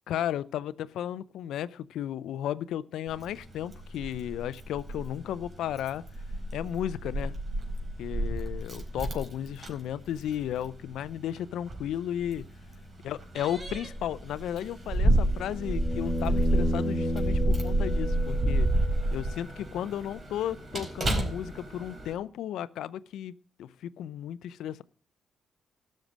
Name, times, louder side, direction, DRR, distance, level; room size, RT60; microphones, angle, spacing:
voice 1, 0.1-6.0 6.5-7.3 8.0-12.5 13.0-18.7 19.1-23.3 23.6-24.8, left 11 dB, 85° left, 17 dB, 0.5 m, -34 dB
Keys jangling, 3.1-22.1, right 1 dB, 35° right, 4.3 m, -30 dB
sound 1, 14.9-19.0 21.4-21.5, equal, 20° left, 4.6 m, -33 dB
13.0 x 6.5 x 7.3 m, 0.41 s
cardioid pair, 80°, 0 cm